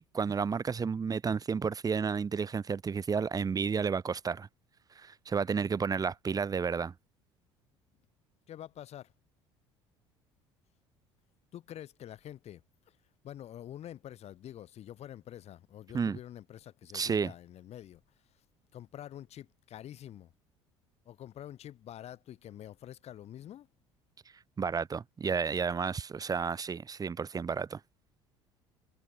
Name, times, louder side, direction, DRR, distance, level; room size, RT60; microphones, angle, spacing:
voice 1, 0.0-4.5 5.0-6.9 15.9-16.2 16.9-17.3 24.6-27.8, right 5 dB, 25° right, 1.0 m, -31 dB
voice 2, 8.5-9.1 11.5-13.0 13.2-18.0 18.7-20.3 21.0-23.7, left 11 dB, 50° left, 4.3 m, -47 dB
hypercardioid pair, 60°, 14 cm